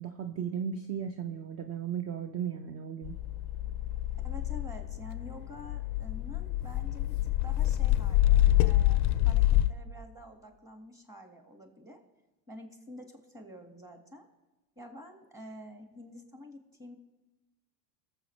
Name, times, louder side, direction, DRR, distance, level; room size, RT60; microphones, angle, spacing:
voice 1, 0.0-3.1, right 8 dB, 30° right, 8 dB, 0.7 m, -35 dB
sound 1, 3.0-9.7, left 14 dB, 40° left, 0.5 m, -27 dB
voice 2, 4.2-7.1 7.4-12.0 12.5-14.3 14.8-17.0, left 1 dB, 5° right, 4 dB, 1.8 m, -48 dB
21.0 x 7.3 x 3.2 m, 1.1 s
hypercardioid pair, 90°, 49 cm